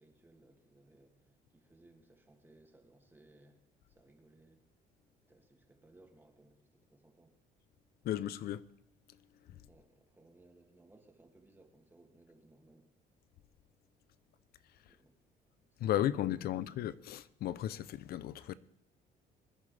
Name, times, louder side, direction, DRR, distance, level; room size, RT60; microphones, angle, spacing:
voice 1, 0.0-3.6 3.9-4.6 5.2-7.3 9.6-12.9 14.8-15.2 15.7-16.6, right 2 dB, 10° right, 2.4 m, -63 dB
voice 2, 8.0-8.6 9.5-9.6 15.8-18.5, left 12 dB, 65° left, 0.6 m, -35 dB
23.5 x 10.5 x 3.4 m
cardioid pair, 110°, 17 cm